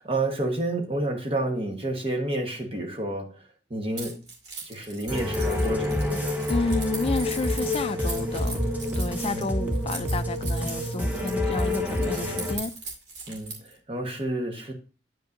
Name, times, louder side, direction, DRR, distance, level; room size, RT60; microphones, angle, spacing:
voice 1, 0.0-3.4 3.7-4.2 4.6-6.0 9.2-9.5 13.3-14.7, right 1 dB, 30° right, 1.2 m, -30 dB
Keys jangling, 4.0-13.7, right 3 dB, 70° right, 2.3 m, -39 dB
sound 1, 5.1-12.6, left 1 dB, 10° right, 1.0 m, -27 dB
voice 2, 6.5-8.6 9.0-12.7, left 3 dB, 35° left, 0.4 m, -31 dB
9.2 x 5.3 x 2.6 m
head